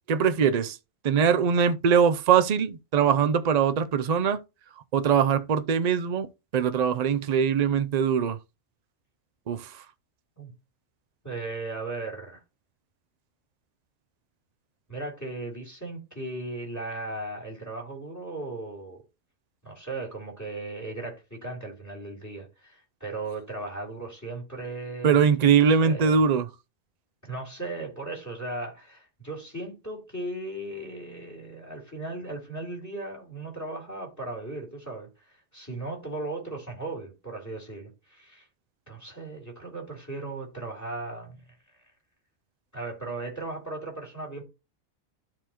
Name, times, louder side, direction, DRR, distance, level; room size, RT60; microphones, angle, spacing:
voice 1, 0.1-0.8 1.0-4.4 4.9-8.4 9.5-9.8 25.0-26.5, right 7 dB, 65° right, 0.4 m, -22 dB
voice 2, 11.2-12.4 14.9-19.0 19.6-25.2 25.8-26.2 27.2-35.1 35.5-38.5 38.9-41.4 42.7-44.4, right 2 dB, 10° left, 3.2 m, -37 dB
12.5 x 4.4 x 2.9 m
omnidirectional pair, 1.4 m